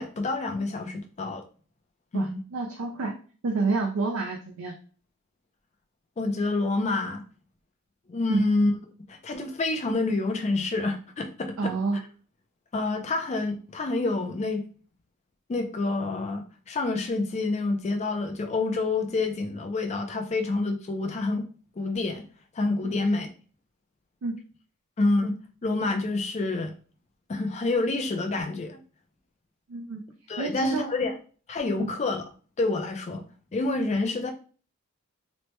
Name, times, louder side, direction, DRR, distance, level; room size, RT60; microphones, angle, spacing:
voice 1, 0.0-1.4 2.1-2.4 6.2-7.2 8.1-8.7 9.1-12.0 12.7-14.6 15.5-21.4 21.8-22.2 22.5-23.3 25.0-25.4 25.6-26.7 27.3-28.8 30.3-31.1 31.5-32.3 32.6-33.2 33.5-34.3, left 2 dB, 30° left, 0.3 m, -28 dB
voice 2, 2.1-3.1 3.4-4.7 8.3-8.4 11.6-12.0 22.8-23.0 24.2-24.4 29.7-30.0 30.4-30.9 31.8-31.9, right 3 dB, 70° right, 0.4 m, -28 dB
3.0 x 2.1 x 3.0 m
head